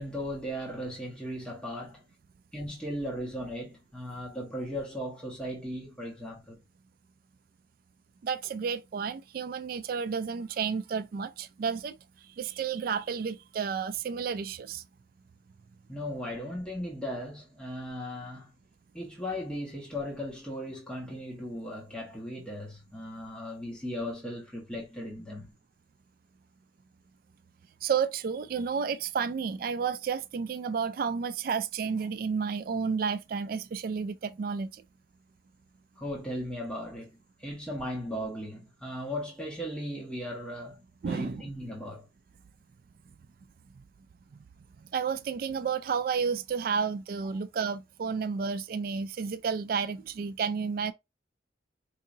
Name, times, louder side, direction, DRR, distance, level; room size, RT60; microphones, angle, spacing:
voice 1, 0.0-2.0 2.5-6.6 15.9-18.6 18.9-25.5 36.0-42.1, equal, 5° left, 1.3 m, -37 dB
voice 2, 8.2-11.9 12.4-14.8 27.8-34.8 41.0-41.4 43.8-43.9 44.8-50.9, right 6 dB, 55° right, 0.3 m, -31 dB
4.7 x 2.7 x 2.7 m
head